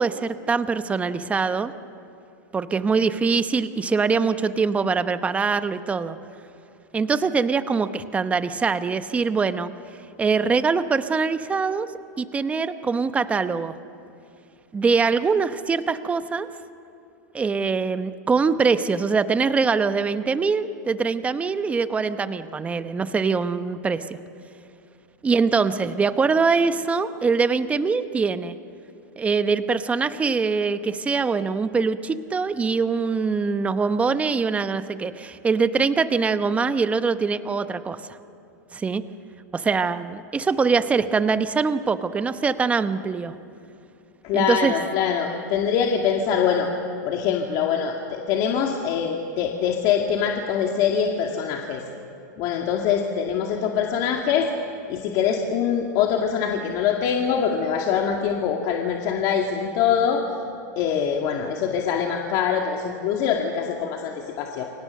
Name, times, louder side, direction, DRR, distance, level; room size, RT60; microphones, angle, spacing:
voice 1, 0.0-1.7 2.5-6.2 6.9-9.7 10.2-11.9 12.2-13.8 14.7-16.5 17.3-24.2 25.2-28.6 29.2-38.0 38.7-39.0 39.5-43.3 44.3-44.7, right 5 dB, 15° right, 11 dB, 0.9 m, -23 dB
voice 2, 44.2-46.7 47.0-51.8 52.4-54.5 54.9-60.2 60.8-64.6, left 7 dB, 45° left, 1 dB, 2.2 m, -23 dB
29.5 x 24.5 x 6.6 m, 2.8 s
supercardioid pair, 140°, 10 cm